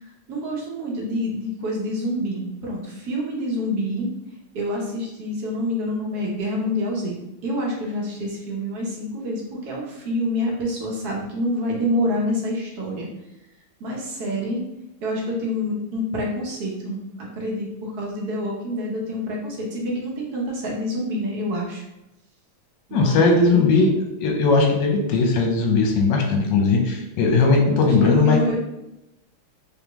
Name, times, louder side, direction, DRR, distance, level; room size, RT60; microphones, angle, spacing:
voice 1, 0.3-4.1 4.5-7.2 7.4-13.1 13.8-14.6 15.0-21.8 22.9-23.7 27.6-28.6, left 1 dB, 60° right, -2 dB, 1.2 m, -27 dB
voice 2, 22.9-28.4, left 3 dB, 65° left, 1 dB, 1.3 m, -18 dB
3.6 x 3.5 x 3.0 m, 0.90 s
omnidirectional pair, 2.4 m